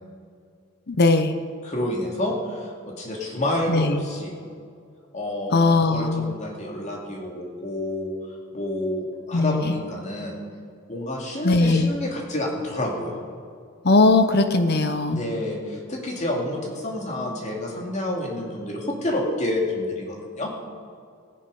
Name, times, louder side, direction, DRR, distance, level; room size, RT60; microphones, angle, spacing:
voice 1, 0.9-1.3 3.7-4.0 5.5-6.3 9.3-9.8 11.4-11.9 13.8-15.2, left 3 dB, 50° left, 9 dB, 0.7 m, -19 dB
voice 2, 1.6-4.3 5.1-8.1 8.5-10.4 10.9-13.1 15.1-20.5, left 1 dB, 35° left, -1 dB, 2.4 m, -29 dB
17.0 x 10.0 x 5.4 m, 2.3 s
head